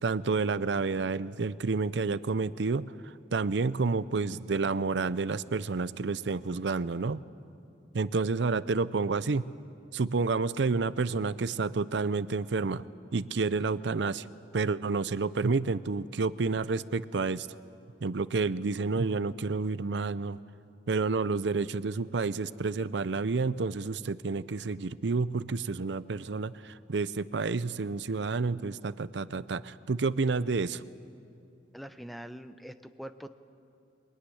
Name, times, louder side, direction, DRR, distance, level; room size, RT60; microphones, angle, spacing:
voice 1, 0.0-7.2 7.9-9.4 9.9-12.8 13.1-14.3 14.5-17.5 18.0-20.4 20.9-30.8, right 4 dB, 75° right, 16 dB, 0.6 m, -29 dB
voice 2, 31.7-33.3, equal, ahead, 10 dB, 0.7 m, -43 dB
23.0 x 21.0 x 9.9 m, 2.5 s
head